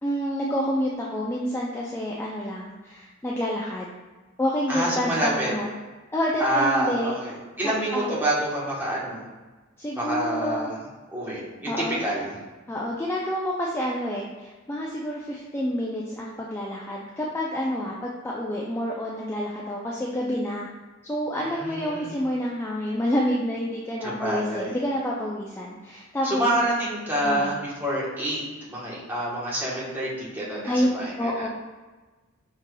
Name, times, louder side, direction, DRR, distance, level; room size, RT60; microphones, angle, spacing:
voice 1, 0.0-3.9 4.4-5.7 6.1-7.2 7.6-8.1 9.8-10.7 11.7-12.0 12.7-20.7 21.0-26.4 27.2-27.6 30.7-31.5, equal, 10° left, -4 dB, 0.3 m, -28 dB
voice 2, 4.7-5.5 6.4-9.2 9.9-10.8 11.1-11.7 12.0-12.3 21.4-22.1 24.0-24.7 26.2-31.5, right 1 dB, 10° right, -7 dB, 1.0 m, -27 dB
5.9 x 3.2 x 2.2 m, 1.2 s
head